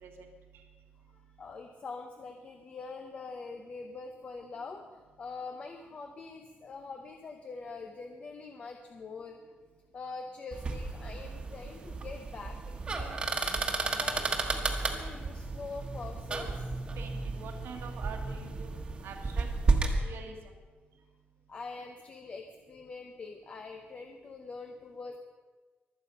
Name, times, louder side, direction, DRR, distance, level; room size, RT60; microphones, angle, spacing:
voice 1, 1.1-9.4 9.9-14.2 14.5-16.7 21.5-25.2, left 4 dB, 35° left, 4 dB, 0.9 m, -44 dB
sound 1, 10.5-20.0, right 3 dB, 25° right, 1.5 m, -33 dB
voice 2, 17.0-18.7 19.0-19.5 20.0-20.5, right 5 dB, 80° right, 3 dB, 1.9 m, -45 dB
24.0 x 8.5 x 5.5 m, 1.4 s
wide cardioid pair, 180°, 4 cm